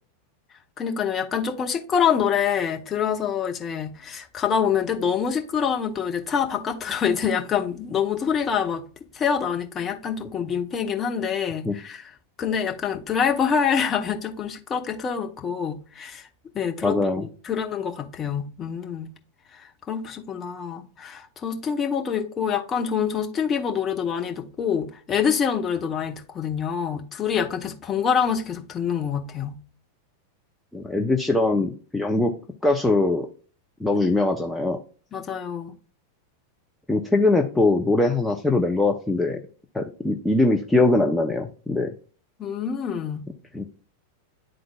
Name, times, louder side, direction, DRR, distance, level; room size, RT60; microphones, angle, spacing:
voice 1, 0.8-8.8 9.1-12.1 12.4-16.3 16.5-19.1 19.5-29.6 33.9-34.0 35.1-35.7 42.4-43.3, left 7 dB, 25° left, 0.9 m, -26 dB
voice 2, 16.8-17.2 30.7-32.3 32.6-33.3 33.8-34.8 36.9-39.4 39.7-41.9 43.5-43.6, left 2 dB, 5° left, 0.6 m, -22 dB
11.0 x 3.8 x 2.3 m
figure-of-eight pair, 90°, 0 cm